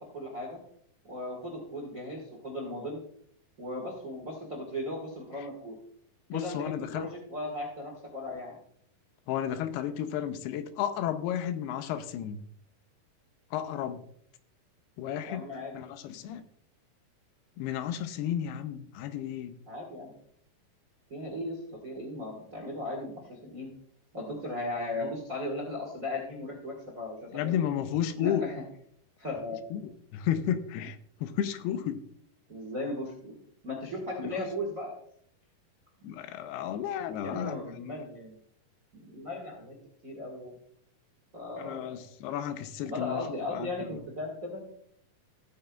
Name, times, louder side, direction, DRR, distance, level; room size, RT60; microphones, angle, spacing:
voice 1, 0.1-0.6 1.0-3.0 3.6-5.8 6.3-8.6 15.2-15.7 19.7-20.1 21.1-23.7 24.1-27.6 28.1-28.5 29.2-29.6 32.5-33.4 33.6-34.9 37.2-38.4 38.9-39.8 40.0-40.5 41.3-42.0 42.8-44.6, left 1 dB, 45° right, -1 dB, 1.0 m, -37 dB
voice 2, 6.3-7.1 9.3-12.4 13.5-14.0 15.0-15.4 15.7-16.4 17.6-19.5 25.0-25.1 27.3-28.4 29.7-32.0 34.2-34.3 36.0-37.9 41.6-43.2 43.5-44.0, left 10 dB, 90° left, 11 dB, 2.7 m, -33 dB
15.5 x 8.8 x 2.3 m, 0.68 s
omnidirectional pair, 4.5 m